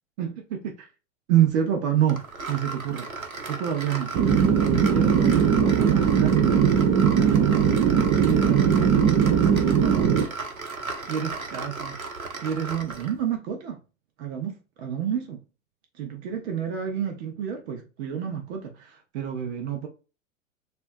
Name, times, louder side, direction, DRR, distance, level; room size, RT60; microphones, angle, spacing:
voice 1, 0.2-0.9 1.3-3.1 3.5-4.1 4.7-7.9 8.2-10.2 11.1-12.0 12.4-13.8 14.2-15.4 16.0-19.9, right 9 dB, 55° right, 1.1 m, -29 dB
sound 1, 2.1-13.2, right 3 dB, 90° right, 1.0 m, -35 dB
sound 2, 4.1-10.2, right 7 dB, 30° right, 0.9 m, -20 dB
6.7 x 2.6 x 2.6 m
figure-of-eight pair, 100°, 41 cm